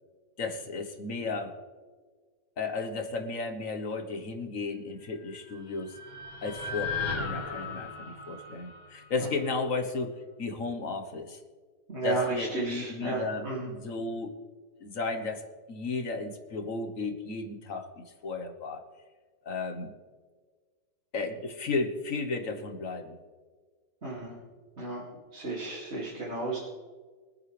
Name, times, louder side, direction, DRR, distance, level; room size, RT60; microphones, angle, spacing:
voice 1, 0.4-1.6 2.6-6.0 6.4-11.4 12.0-14.4 14.8-18.8 19.4-19.9 21.1-23.2, left 3 dB, 55° left, 6 dB, 1.6 m, -34 dB
sound 1, 5.3-9.6, left 4 dB, 25° left, 2.1 m, -37 dB
voice 2, 11.9-13.7 24.0-24.4 24.8-25.0 25.3-26.6, right 3 dB, 40° right, -7 dB, 2.9 m, -33 dB
24.0 x 9.4 x 3.4 m, 1.5 s
omnidirectional pair, 1.8 m